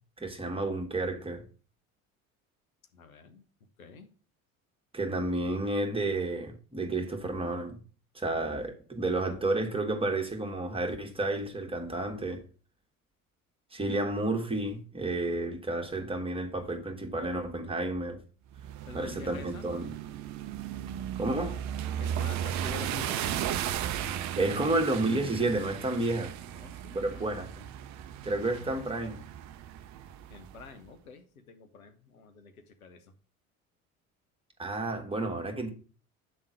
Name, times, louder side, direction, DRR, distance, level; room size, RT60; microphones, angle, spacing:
voice 1, 0.2-1.4 4.9-7.8 8.1-12.4 13.7-18.2 18.9-19.9 21.1-21.6 24.3-26.3 26.9-27.5 28.2-29.2 34.6-35.7, right 2 dB, 15° right, 1.7 m, -31 dB
voice 2, 2.9-3.4 3.8-4.1 18.9-19.7 22.0-23.3 24.4-24.6 26.5-27.3 27.6-27.7 28.4-28.8 30.3-33.1, left 5 dB, 80° left, 1.0 m, -48 dB
sound 1, 18.5-30.7, right 10 dB, 40° right, 0.6 m, -36 dB
8.2 x 3.6 x 6.3 m
figure-of-eight pair, 65°, 42 cm